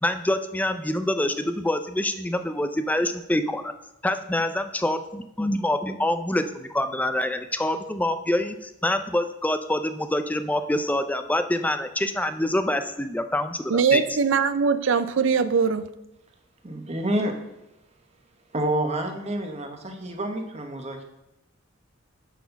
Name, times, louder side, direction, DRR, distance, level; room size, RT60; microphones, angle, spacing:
voice 1, 0.0-3.7 4.0-14.0, left 1 dB, 10° left, 9 dB, 0.4 m, -26 dB
voice 2, 13.7-15.8, right 5 dB, 70° right, 13 dB, 0.5 m, -21 dB
voice 3, 16.6-17.3 18.5-21.0, right 1 dB, 35° right, 4 dB, 1.1 m, -28 dB
9.2 x 4.2 x 5.8 m, 0.88 s
head